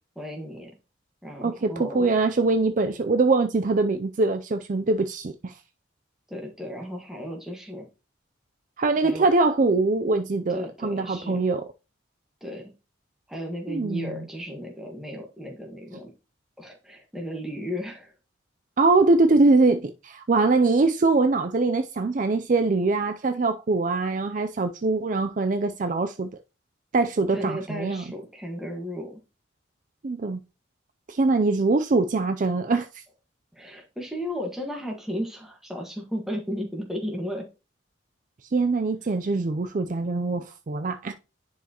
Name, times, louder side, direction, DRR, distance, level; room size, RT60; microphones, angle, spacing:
voice 1, 0.1-0.7 1.2-2.1 6.3-7.9 9.0-9.3 10.5-11.5 12.4-12.7 13.3-16.1 16.6-18.1 27.3-29.2 33.5-37.4, equal, ahead, 1.4 m, -34 dB
voice 2, 1.4-5.5 8.8-11.6 13.7-14.3 18.8-26.3 26.9-28.0 30.0-30.4 31.1-33.0 38.5-41.1, right 3 dB, 40° right, 0.4 m, -23 dB
10.0 x 4.6 x 2.9 m
head